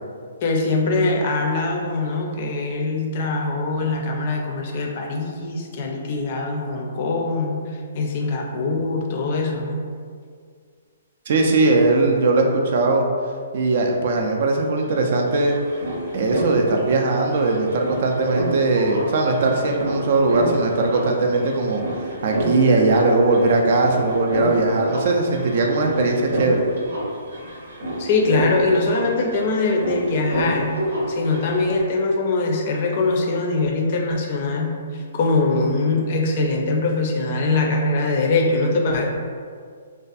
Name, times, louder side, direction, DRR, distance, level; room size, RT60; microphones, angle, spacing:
voice 1, 0.4-9.8 28.0-30.7 31.1-39.0, left 3 dB, 45° left, 1 dB, 0.4 m, -22 dB
voice 2, 11.3-13.1 13.5-15.5 16.1-21.8 22.2-26.6, right 3 dB, 55° right, 2 dB, 0.3 m, -19 dB
sound 1, 14.8-14.9 15.0-31.8, right 1 dB, 85° right, 0.8 m, -29 dB
2.5 x 2.2 x 2.4 m, 2.1 s
hypercardioid pair, 150°, 0 cm